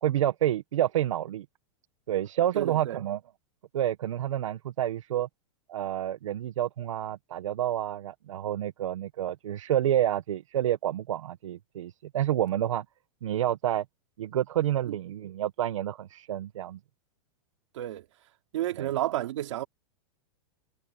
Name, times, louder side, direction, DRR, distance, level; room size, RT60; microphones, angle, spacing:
voice 1, 0.0-1.4 2.1-3.2 3.7-5.3 5.7-12.8 13.2-13.8 14.2-16.8 18.8-18.9, right 11 dB, 90° right, 1.3 m, -29 dB
voice 2, 2.5-3.0 14.9-15.0 17.7-18.0 18.5-19.7, right 13 dB, 70° right, 3.0 m, -31 dB
supercardioid pair, 160°, 16 cm